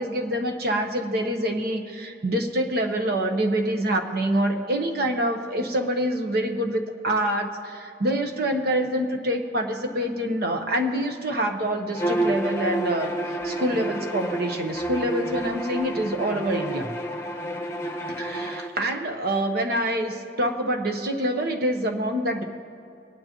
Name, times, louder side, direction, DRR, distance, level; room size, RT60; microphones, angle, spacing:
voice 1, 0.0-13.1 13.4-16.9 18.2-22.4, right 1 dB, 60° right, 4 dB, 1.1 m, -26 dB
Bowed string instrument, 11.9-18.7, right 1 dB, 15° left, 1.0 m, -29 dB
24.5 x 9.5 x 3.0 m, 2.6 s
head